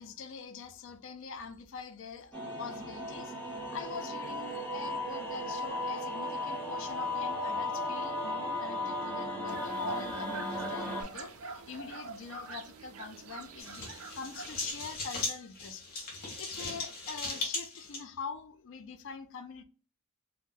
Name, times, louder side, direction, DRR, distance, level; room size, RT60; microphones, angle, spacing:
voice 1, 0.0-13.8 14.1-15.9 16.4-19.6, left 5 dB, 60° left, 0.4 m, -44 dB
sound 1, 2.3-11.0, left 1 dB, 5° left, 0.8 m, -36 dB
sound 2, 9.5-14.7, right 3 dB, 80° right, 0.5 m, -44 dB
sound 3, 13.6-18.0, left 3 dB, 45° left, 1.1 m, -38 dB
2.7 x 2.1 x 3.7 m
head